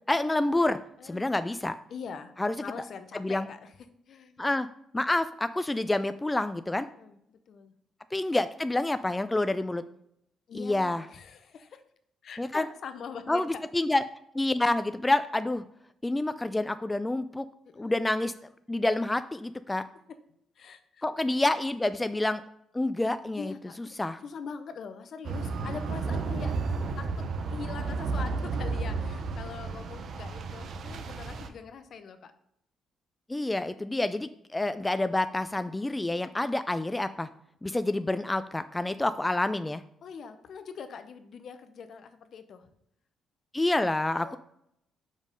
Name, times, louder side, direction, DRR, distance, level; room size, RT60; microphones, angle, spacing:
voice 1, 0.1-1.8 2.4-2.5 3.1-3.5 4.4-4.7 4.9-6.9 8.1-9.8 10.5-11.0 12.4-12.7 13.3-14.0 14.3-15.6 16.0-17.5 17.8-18.3 18.7-19.8 21.0-22.4 22.7-23.5 24.0-24.2 33.3-37.3 37.6-39.8 43.5-44.4, left 2 dB, 15° left, 12 dB, 0.3 m, -28 dB
voice 2, 1.0-1.3 1.9-2.3 2.6-3.7 4.1-4.4 7.0-7.7 10.5-11.8 12.2-13.6 17.7-18.1 20.1-20.2 20.6-21.0 23.4-23.9 24.2-26.5 27.0-32.3 40.0-42.7 44.2-44.4, left 6 dB, 60° left, 10 dB, 0.7 m, -43 dB
sound 1, 25.2-31.5, right 4 dB, 60° right, 0.7 m, -32 dB
5.4 x 5.2 x 5.2 m, 0.75 s
cardioid pair, 90°, 0 cm